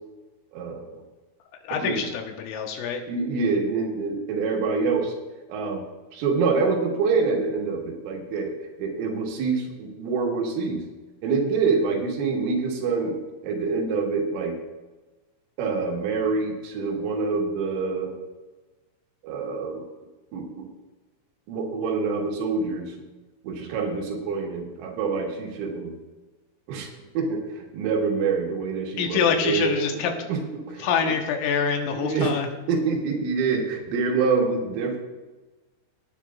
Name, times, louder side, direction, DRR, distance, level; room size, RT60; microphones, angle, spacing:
voice 1, 0.5-1.0 1.8-2.1 3.1-5.1 5.5-5.8 6.1-10.8 11.2-14.5 15.6-18.1 19.2-19.8 20.3-20.7 21.5-22.9 23.4-25.9 26.7-30.0 30.3-31.1 31.9-32.4 32.7-35.0, right 4 dB, 80° right, 0 dB, 4.2 m, -26 dB
voice 2, 1.6-3.0 29.0-30.1 30.8-32.5, left 6 dB, 85° left, 3 dB, 3.7 m, -25 dB
18.0 x 9.6 x 2.5 m, 1.2 s
omnidirectional pair, 5.8 m